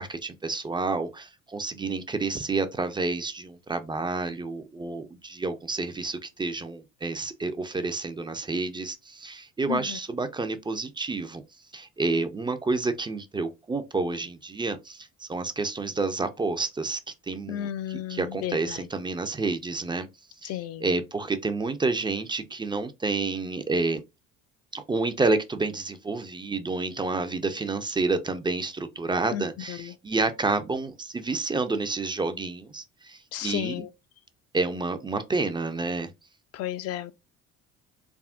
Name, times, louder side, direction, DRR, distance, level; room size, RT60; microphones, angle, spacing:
voice 1, 0.0-11.4 11.7-17.0 17.3-20.1 20.4-24.0 24.7-33.9 34.5-36.1, right 3 dB, 15° right, 0.4 m, -29 dB
voice 2, 9.7-10.0 17.5-18.8 20.4-20.9 29.3-29.9 33.3-33.9 36.5-37.1, left 12 dB, 55° left, 0.5 m, -33 dB
3.5 x 2.0 x 2.4 m
supercardioid pair, 90°, 31 cm